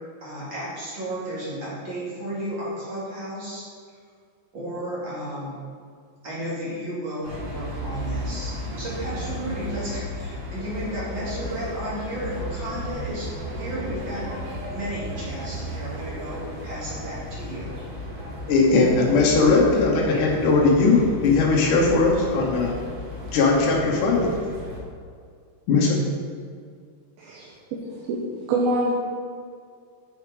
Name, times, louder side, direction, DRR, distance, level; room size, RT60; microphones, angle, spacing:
voice 1, 0.2-3.6 4.5-5.6 6.2-17.7, right 1 dB, 30° right, -8 dB, 2.6 m, -33 dB
sound 1, 7.2-24.8, equal, 60° right, 1.5 m, -34 dB
voice 2, 18.5-22.7 23.3-24.3 25.7-25.9, left 3 dB, 75° left, -2 dB, 1.8 m, -19 dB
voice 3, 27.2-28.2 28.5-28.9, right 2 dB, 75° right, -2 dB, 2.3 m, -26 dB
7.9 x 6.8 x 5.0 m, 2.2 s
omnidirectional pair, 5.2 m